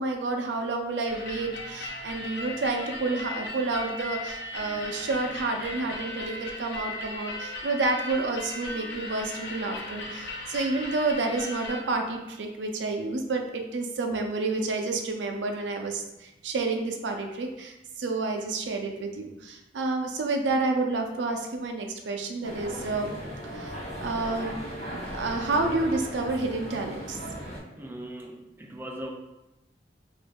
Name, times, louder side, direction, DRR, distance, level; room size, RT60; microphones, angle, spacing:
voice 1, 0.0-23.1 23.4-24.6 25.2-27.2, right 3 dB, 90° right, 3 dB, 0.5 m, -29 dB
sound 1, 1.1-11.8, left 2 dB, 65° left, 0.5 m, -37 dB
sound 2, 22.4-27.6, equal, 40° left, 0.8 m, -37 dB
voice 2, 27.8-29.1, right 1 dB, 10° right, 1 dB, 0.3 m, -39 dB
2.9 x 2.6 x 3.5 m, 0.95 s
head